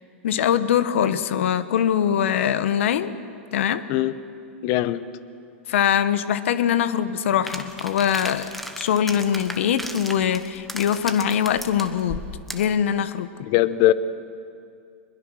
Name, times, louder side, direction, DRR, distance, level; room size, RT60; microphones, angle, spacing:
voice 1, 0.2-3.1 3.5-3.8 5.7-8.5 8.8-12.2 12.5-13.3, left 9 dB, 70° left, 13 dB, 1.2 m, -22 dB
voice 2, 4.6-5.0 13.4-13.9, left 15 dB, 50° left, 15 dB, 1.0 m, -20 dB
sound 1, 7.5-12.7, equal, ahead, 1.7 m, -36 dB
24.5 x 21.5 x 6.4 m, 2.4 s
hypercardioid pair, 115°, 7 cm